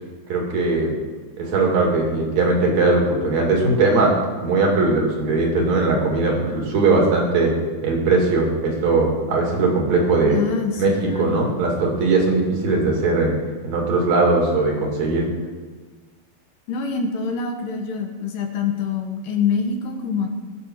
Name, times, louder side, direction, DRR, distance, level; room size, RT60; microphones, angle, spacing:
voice 1, 0.3-0.9 1.4-4.2 4.4-7.5 7.8-10.4 10.8-13.4 13.6-15.3, right 3 dB, 50° right, -1 dB, 3.3 m, -19 dB
voice 2, 10.3-10.8 11.0-11.5 16.7-20.3, left 5 dB, 70° left, 3 dB, 2.7 m, -25 dB
20.5 x 7.2 x 4.7 m, 1.4 s
omnidirectional pair, 4.4 m